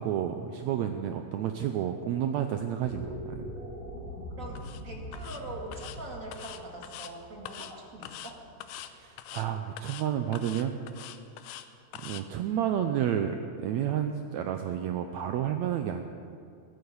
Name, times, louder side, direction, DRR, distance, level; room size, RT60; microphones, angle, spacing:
voice 1, 0.0-3.4 8.9-10.8 12.0-16.1, right 9 dB, 85° right, 6 dB, 1.6 m, -30 dB
sound 1, 2.8-9.1, equal, 65° right, 5.9 m, -42 dB
voice 2, 4.4-8.4, right 2 dB, 30° right, -1 dB, 1.9 m, -43 dB
sound 2, 4.6-4.8 5.1-5.4 5.7-6.0 6.3-7.1 7.5-7.7 8.0-8.3 8.6-8.9 9.2-9.5 9.8-10.1 10.3-11.7 11.9-12.2, left 11 dB, 80° left, 2.2 m, -43 dB
14.5 x 12.5 x 7.1 m, 2.4 s
omnidirectional pair, 3.8 m